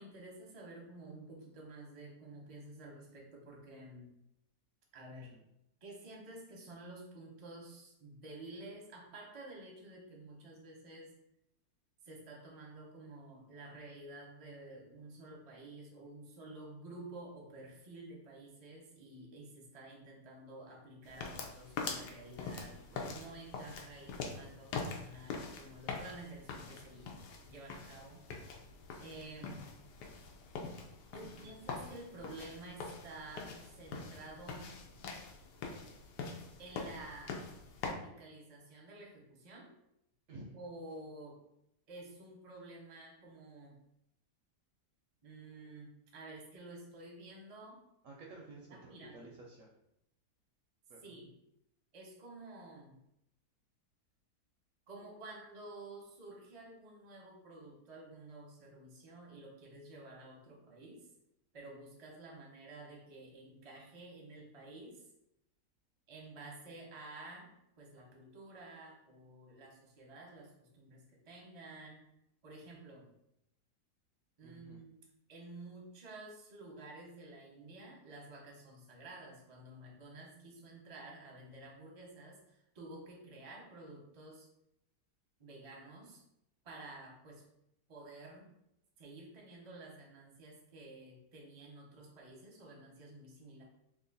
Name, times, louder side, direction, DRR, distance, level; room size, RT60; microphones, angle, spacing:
voice 1, 0.0-4.1 4.9-5.3 5.8-11.1 12.0-27.2 27.4-28.2 29.0-29.7 31.1-34.7 36.6-37.4 37.8-39.7 40.5-41.4 41.9-43.8 45.2-47.8 48.7-49.3 51.0-51.4 51.9-53.0 54.9-61.1 61.5-65.1 66.1-72.0 72.4-73.1 74.4-75.0 75.3-84.5 85.4-86.2 86.6-87.4 87.9-88.5 89.0-93.6, right 2 dB, 35° right, -1 dB, 0.6 m, -51 dB
voice 2, 5.1-5.4 31.2-31.5 40.3-40.6 48.0-49.7 50.9-51.1 74.4-74.8, right 2 dB, 65° right, -1 dB, 0.8 m, -53 dB
sound 1, 21.1-37.9, left 4 dB, 90° left, 1.2 m, -44 dB
3.0 x 2.5 x 3.9 m, 0.81 s
omnidirectional pair, 1.7 m